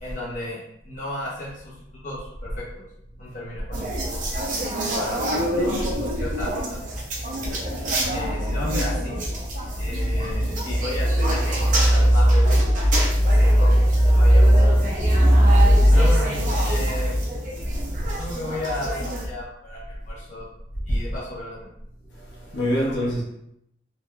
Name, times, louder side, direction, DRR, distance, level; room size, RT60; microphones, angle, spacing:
voice 1, 0.0-1.7 2.0-2.9 3.2-4.2 4.8-6.9 8.1-9.3 9.8-12.6 13.2-15.0 15.9-17.1 18.2-20.4 20.9-21.7 22.7-23.1, left 1 dB, 40° left, -7 dB, 0.9 m, -34 dB
sound 1, 3.7-19.3, equal, 45° right, 0.5 m, -20 dB
voice 2, 22.5-23.2, equal, 70° left, -5 dB, 0.9 m, -27 dB
3.1 x 2.5 x 2.2 m, 0.77 s
head